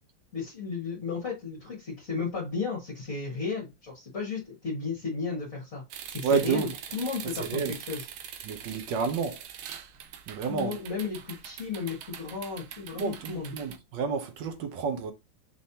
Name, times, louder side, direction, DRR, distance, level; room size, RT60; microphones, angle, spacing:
voice 1, 0.3-5.8 6.1-8.1 10.5-13.5, left 5 dB, 45° left, 1.8 m, -34 dB
sound 1, 5.9-13.8, right 9 dB, 85° right, 1.5 m, -43 dB
voice 2, 6.2-6.7 7.4-7.7 8.4-9.4 10.3-10.8 13.0-15.1, right 5 dB, 70° right, 1.5 m, -29 dB
5.5 x 3.1 x 2.8 m
omnidirectional pair, 2.2 m